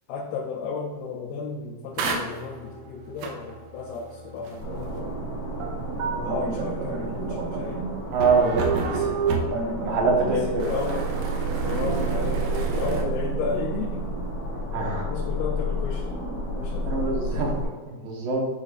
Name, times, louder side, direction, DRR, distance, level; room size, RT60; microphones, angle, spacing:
voice 1, 0.1-5.1 6.0-7.8 8.4-9.3 10.3-11.1 11.6-14.1 14.7-16.1 16.4-17.3, left 5 dB, 85° left, -2 dB, 2.7 m, -34 dB
sound 1, 1.9-13.0, right 4 dB, 85° right, 2.6 m, -30 dB
sound 2, 4.6-17.7, right 1 dB, 30° left, 1.5 m, -31 dB
voice 2, 8.1-8.7 9.8-10.6 14.7-15.1 16.9-17.5 17.9-18.4, right 4 dB, 70° right, -2 dB, 2.7 m, -23 dB
10.5 x 4.1 x 2.4 m, 1.3 s
omnidirectional pair, 4.6 m